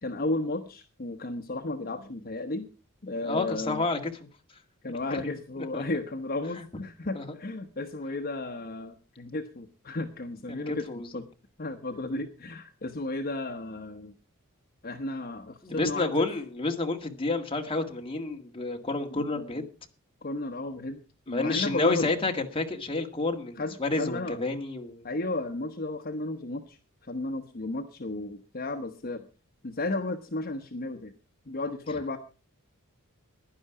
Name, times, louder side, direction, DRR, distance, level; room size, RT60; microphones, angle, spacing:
voice 1, 0.0-2.7 3.0-3.9 4.8-10.9 11.1-11.2 11.6-14.1 14.8-16.3 19.1-19.6 20.2-21.0 21.3-22.1 23.6-24.4 25.0-26.8 27.0-29.2 29.6-31.1 31.5-32.2, left 2 dB, 45° left, 5 dB, 1.1 m, -33 dB
voice 2, 3.2-4.0 4.9-5.3 5.7-5.8 7.1-7.3 10.5-11.1 15.6-19.7 21.3-25.1, left 3 dB, 25° left, 2 dB, 1.9 m, -30 dB
16.0 x 11.0 x 4.9 m, 0.35 s
head